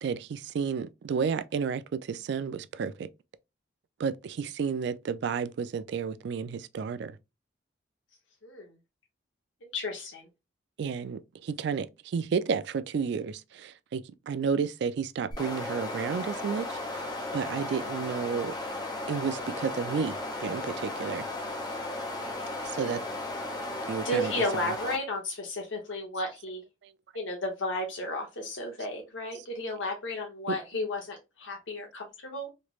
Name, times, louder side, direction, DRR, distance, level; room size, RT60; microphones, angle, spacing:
voice 1, 0.0-3.1 4.0-7.1 10.8-17.0 17.3-18.5 19.1-21.3 22.6-23.0 23.9-24.3 30.5-30.6, right 6 dB, 60° right, 0.3 m, -31 dB
voice 2, 9.6-10.3 24.0-26.6 27.1-32.5, left 1 dB, 80° left, 0.8 m, -33 dB
sound 1, 15.3-25.0, left 2 dB, 20° left, 0.6 m, -35 dB
3.2 x 3.0 x 2.3 m
head